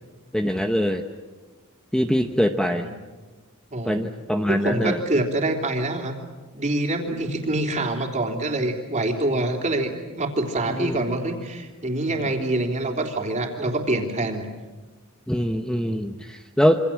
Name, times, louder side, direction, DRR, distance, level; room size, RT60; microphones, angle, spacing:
voice 1, 0.3-1.0 1.9-2.9 3.8-5.0 10.7-10.9 15.3-16.8, equal, 5° left, 5 dB, 0.9 m, -23 dB
voice 2, 3.7-4.1 4.4-6.1 6.5-14.5, right 2 dB, 35° right, 3 dB, 3.5 m, -25 dB
27.5 x 25.5 x 7.5 m, 1.3 s
head